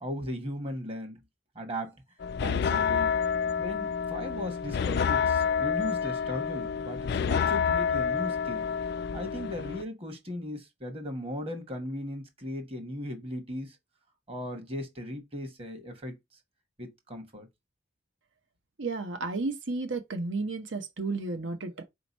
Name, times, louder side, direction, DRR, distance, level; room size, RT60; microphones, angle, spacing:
voice 1, 0.0-1.2 1.5-2.0 2.4-3.1 3.6-8.7 9.1-13.8 14.3-16.2 16.8-17.5, left 1 dB, 30° right, 1.1 m, -37 dB
sound 1, 2.2-9.8, left 6 dB, 55° left, 0.3 m, -28 dB
voice 2, 18.8-21.8, right 3 dB, 75° right, 0.8 m, -32 dB
4.4 x 2.9 x 3.9 m
head